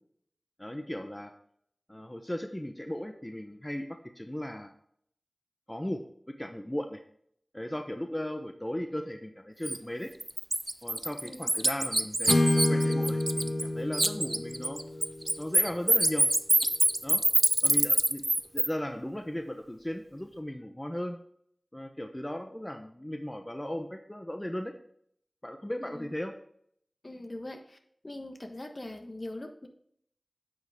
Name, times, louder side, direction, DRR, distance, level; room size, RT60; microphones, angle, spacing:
voice 1, 0.6-1.3 1.9-3.9 4.2-4.7 5.7-6.0 6.4-7.0 7.5-10.1 10.8-12.4 12.7-14.8 15.4-16.3 17.0-17.2 17.6-18.2 18.5-21.2 21.7-24.7 25.4-26.3, left 1 dB, 20° left, 5 dB, 0.9 m, -36 dB
Bird, 9.6-9.8 10.2-13.7 13.9-18.7, right 1 dB, 35° right, 0.6 m, -25 dB
voice 2, 11.2-11.5 25.8-26.1 27.0-27.8 28.0-29.7, left 1 dB, 45° left, 5 dB, 1.3 m, -42 dB
Acoustic guitar / Strum, 12.3-16.2, left 1 dB, 75° left, 1.2 m, -29 dB
10.0 x 6.1 x 3.6 m, 0.66 s
wide cardioid pair, 40°, 0 cm